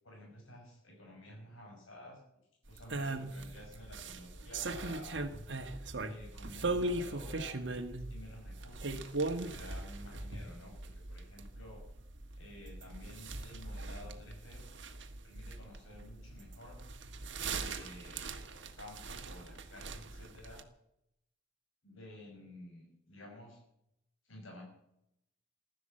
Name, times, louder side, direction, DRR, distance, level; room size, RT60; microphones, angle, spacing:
voice 1, 0.0-2.2 2.7-5.2 6.0-7.5 8.1-11.8 12.4-14.6 15.2-16.8 17.4-20.6 21.8-23.6 24.2-24.6, left 1 dB, 80° left, 1 dB, 5.8 m, -52 dB
sound 1, 2.7-20.6, right 2 dB, 60° right, 1.4 m, -40 dB
15.5 x 12.0 x 7.7 m, 0.79 s
head